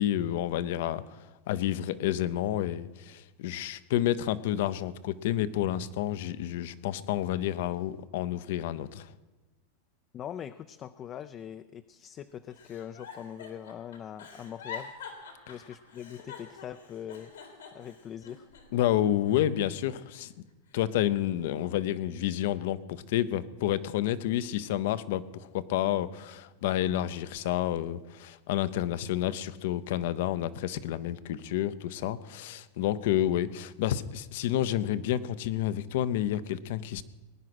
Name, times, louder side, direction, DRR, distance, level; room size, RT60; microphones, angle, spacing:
voice 1, 0.0-9.1 18.7-20.3 20.7-37.0, left 12 dB, 65° left, 15 dB, 0.8 m, -30 dB
voice 2, 10.1-14.9 15.5-17.3 17.7-18.5, left 9 dB, 35° left, 10 dB, 0.5 m, -42 dB
Giggle, 12.5-18.9 19.3-20.2 20.7-21.8 22.3-22.7, left 6 dB, 90° left, 3.2 m, -47 dB
19.5 x 9.8 x 6.1 m, 1.2 s
hypercardioid pair, 115°, 0 cm